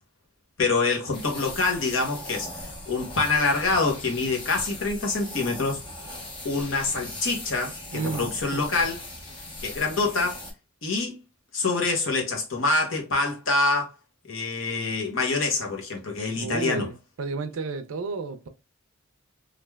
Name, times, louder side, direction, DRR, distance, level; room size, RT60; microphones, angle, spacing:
voice 1, 0.6-2.5 2.9-5.8 6.4-9.0 9.6-10.4 10.8-11.2 11.5-13.9 14.3-16.9, left 3 dB, 65° left, 0.9 m, -26 dB
sound 1, 1.1-10.5, left 1 dB, 25° left, 0.9 m, -39 dB
voice 2, 7.9-8.8 16.3-18.5, right 4 dB, 70° right, 0.5 m, -32 dB
3.2 x 2.5 x 2.2 m
head